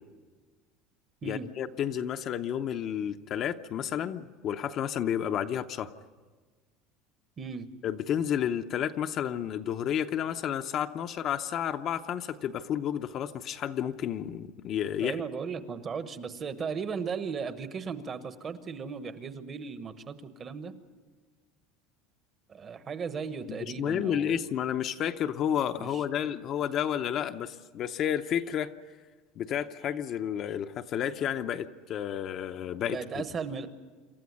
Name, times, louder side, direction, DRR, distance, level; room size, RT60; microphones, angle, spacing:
voice 1, 1.2-5.9 7.8-15.2 23.5-28.7 29.4-33.2, left 9 dB, 35° left, 8 dB, 0.7 m, -31 dB
voice 2, 15.0-20.7 22.5-24.4 25.8-26.3 32.9-33.7, right 5 dB, 25° right, 11 dB, 1.0 m, -36 dB
27.0 x 14.0 x 9.5 m, 1.4 s
cardioid pair, 165°, 0 cm